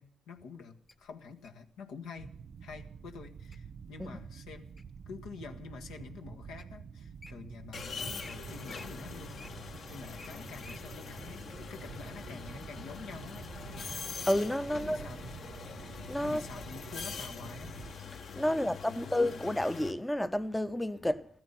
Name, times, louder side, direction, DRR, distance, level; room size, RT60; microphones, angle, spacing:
voice 1, 0.0-2.3 2.6-4.7 5.1-13.5 14.7-15.3 16.2-17.8 18.4-19.1, left 5 dB, 90° left, 1.6 m, -48 dB
Wild animals, 0.9-1.6 2.3-2.6 3.1-3.6 4.1-5.0 5.6-5.7 6.3-6.4 6.6-6.7 7.0-7.3 7.7-7.9 8.2-8.4 8.6-10.8 11.3-11.4, left 2 dB, 25° left, 1.0 m, -51 dB
sound 1, 2.2-17.9, right 6 dB, 55° right, 0.8 m, -48 dB
sound 2, 7.7-19.9, left 5 dB, 60° left, 1.5 m, -44 dB
voice 2, 14.3-15.1 16.1-16.4 18.4-21.3, left 1 dB, 10° left, 0.6 m, -30 dB
15.5 x 13.5 x 5.7 m
cardioid pair, 90°, 0 cm